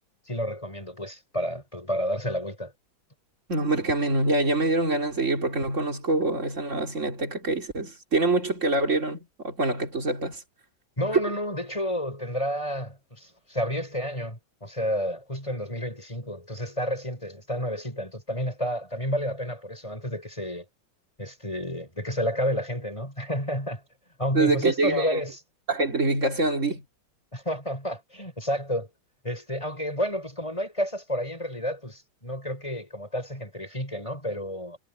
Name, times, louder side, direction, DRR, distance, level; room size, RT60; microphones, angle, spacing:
voice 1, 0.3-2.7 11.0-20.7 21.2-23.8 24.2-25.4 27.3-28.9 29.2-34.8, equal, 15° left, 7.3 m, -30 dB
voice 2, 3.5-10.4 11.1-11.2 24.3-25.2 25.7-26.8, right 2 dB, 40° right, 3.8 m, -25 dB
omnidirectional pair, 2.1 m